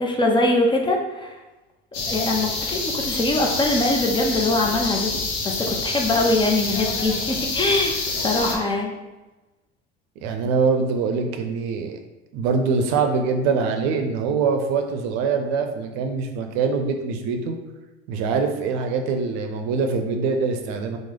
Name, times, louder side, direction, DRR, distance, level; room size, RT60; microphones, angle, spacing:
voice 1, 0.0-1.4 2.0-5.1 5.4-8.0 8.2-8.9, left 2 dB, 15° left, 1 dB, 0.5 m, -22 dB
sound 1, 1.9-8.6, left 3 dB, 55° left, 0.8 m, -27 dB
voice 2, 10.2-12.0 12.3-17.6 18.1-21.0, right 5 dB, 55° right, 5 dB, 0.6 m, -23 dB
3.1 x 2.1 x 3.7 m, 1.1 s
hypercardioid pair, 75°, 33 cm